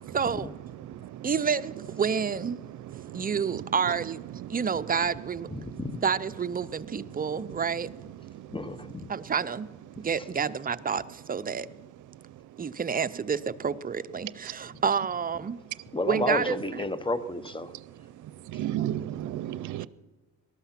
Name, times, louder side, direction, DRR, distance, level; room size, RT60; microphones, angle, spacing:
voice 1, 0.1-0.5 1.2-2.6 3.1-4.2 4.5-5.5 6.0-7.9 9.1-9.7 10.0-11.7 12.6-15.6 16.1-16.8 19.8-19.9, right 6 dB, 30° right, 0.6 m, -29 dB
voice 2, 5.5-6.0 8.5-9.1 15.9-17.7, left 2 dB, 15° left, 0.8 m, -31 dB
voice 3, 18.5-19.9, right 12 dB, 75° right, 0.6 m, -31 dB
18.5 x 12.5 x 5.8 m
cardioid pair, 90°, 30 cm